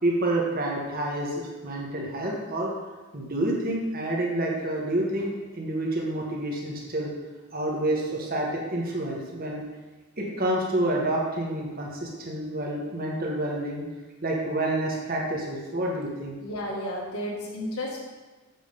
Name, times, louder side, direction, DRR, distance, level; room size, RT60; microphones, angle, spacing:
voice 1, 0.0-2.7 3.1-7.1 7.5-9.6 10.2-13.9 14.2-16.3, right 1 dB, 40° right, -2 dB, 1.4 m, -28 dB
voice 2, 16.4-18.0, left 1 dB, 75° left, -3 dB, 1.9 m, -32 dB
7.4 x 7.1 x 3.6 m, 1.2 s
head